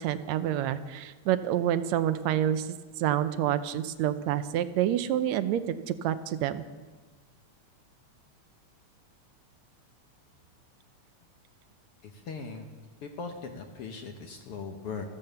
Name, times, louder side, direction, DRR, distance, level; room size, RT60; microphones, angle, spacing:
voice 1, 0.0-2.7 3.0-6.6, right 11 dB, 75° right, 12 dB, 1.9 m, -28 dB
voice 2, 12.0-12.7 13.0-15.1, left 5 dB, 60° left, 4 dB, 1.8 m, -39 dB
14.5 x 14.0 x 6.8 m, 1.3 s
omnidirectional pair, 3.3 m